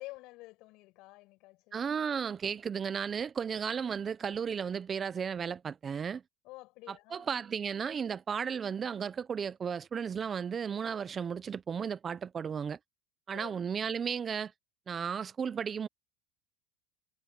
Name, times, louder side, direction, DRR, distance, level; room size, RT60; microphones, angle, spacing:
voice 1, 0.0-1.9 6.4-7.3 13.3-13.6, left 21 dB, 55° left, 7.7 m, -49 dB
voice 2, 1.7-6.2 6.9-12.8 13.3-14.5 14.9-15.9, right 7 dB, 25° right, 0.5 m, -34 dB
supercardioid pair, 140°, 0 cm